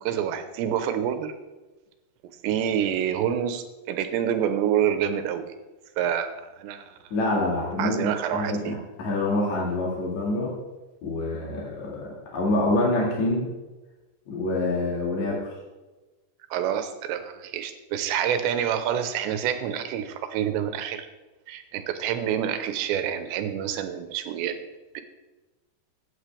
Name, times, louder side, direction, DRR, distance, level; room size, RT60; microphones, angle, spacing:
voice 1, 0.0-1.3 2.4-5.5 6.0-7.0 7.8-8.8 16.5-21.1 21.5-24.6 24.9-25.0, right 9 dB, 85° right, 8 dB, 3.0 m, -27 dB
voice 2, 7.1-10.5 11.0-13.5 14.3-15.5, left 2 dB, 50° left, -3 dB, 2.8 m, -26 dB
16.0 x 9.0 x 3.4 m, 1.1 s
omnidirectional pair, 5.1 m